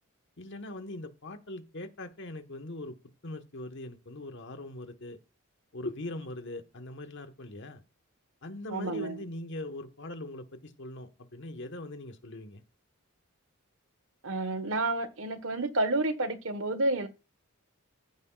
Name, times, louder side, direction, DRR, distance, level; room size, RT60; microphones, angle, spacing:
voice 1, 0.4-3.0 3.2-5.2 5.7-7.8 8.4-12.6, left 2 dB, 60° left, 1.4 m, -41 dB
voice 2, 8.7-9.2 14.2-17.1, right 2 dB, 70° right, 1.5 m, -30 dB
14.5 x 9.6 x 2.5 m
head